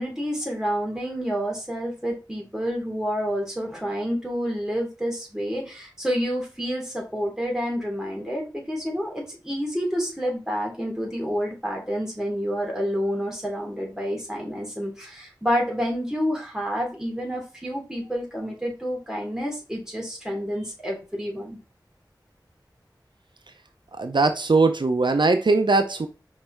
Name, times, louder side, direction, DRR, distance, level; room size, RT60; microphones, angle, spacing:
voice 1, 0.0-21.6, equal, 5° right, -1 dB, 2.9 m, -29 dB
voice 2, 24.0-26.1, right 3 dB, 75° right, 7 dB, 0.6 m, -20 dB
5.3 x 4.0 x 4.5 m, 0.32 s
wide cardioid pair, 45°, 8 cm